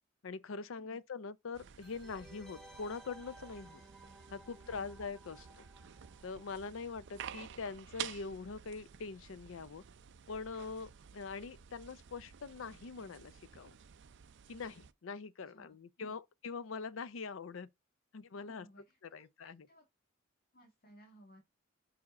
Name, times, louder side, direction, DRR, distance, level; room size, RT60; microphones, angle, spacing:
voice 1, 0.2-3.8 4.3-5.5 6.2-9.8 10.3-13.8 14.5-17.7 18.1-18.7 19.0-19.7, left 4 dB, 75° left, 0.5 m, -43 dB
sound 1, 1.5-14.9, right 9 dB, 60° right, 0.4 m, -51 dB
sound 2, 1.8-7.3 7.5-7.6, right 1 dB, 5° left, 0.8 m, -58 dB
voice 2, 15.4-16.1 18.5-19.8 20.5-21.4, right 1 dB, 50° left, 1.6 m, -61 dB
5.0 x 4.8 x 4.2 m
head